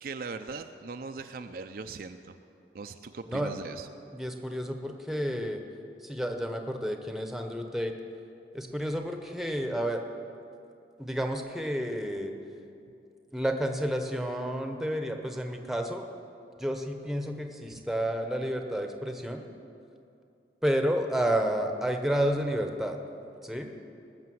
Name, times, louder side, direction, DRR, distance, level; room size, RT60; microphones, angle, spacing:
voice 1, 0.0-2.3 2.7-3.9 17.7-17.8, right 4 dB, 55° right, 7 dB, 0.5 m, -40 dB
voice 2, 4.1-5.6 6.0-7.9 8.5-10.0 11.0-12.3 13.3-16.0 16.6-19.4 20.6-23.0 23.4-23.7, equal, ahead, 4 dB, 0.9 m, -30 dB
20.0 x 6.7 x 7.8 m, 2.6 s
head